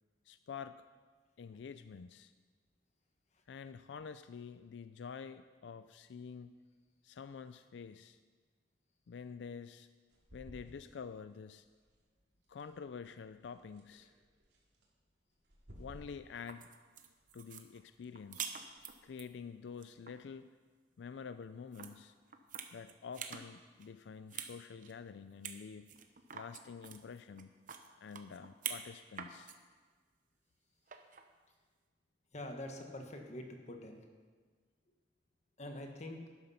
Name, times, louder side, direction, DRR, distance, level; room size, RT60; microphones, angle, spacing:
voice 1, 0.3-0.8 1.4-2.3 3.5-6.6 7.0-8.2 9.1-9.9 10.3-11.7 12.5-14.1 15.8-16.7 17.3-18.5 19.0-20.5 21.0-22.2 22.7-25.9 26.3-27.5 28.0-29.5, left 6 dB, 90° left, 12 dB, 0.4 m, -48 dB
sound 1, 10.1-20.4, equal, 80° right, 2.6 m, -61 dB
sound 2, 16.3-19.3 19.7-20.1 21.7-21.9 22.3-23.5 23.8-24.5 24.8-24.9 25.4-25.6 25.9-28.9 29.1-29.5 30.9-31.3, right 8 dB, 50° right, 0.9 m, -45 dB
voice 2, 32.3-34.1 35.6-36.3, left 1 dB, 40° left, 4 dB, 1.4 m, -45 dB
12.0 x 9.5 x 5.7 m, 1.5 s
head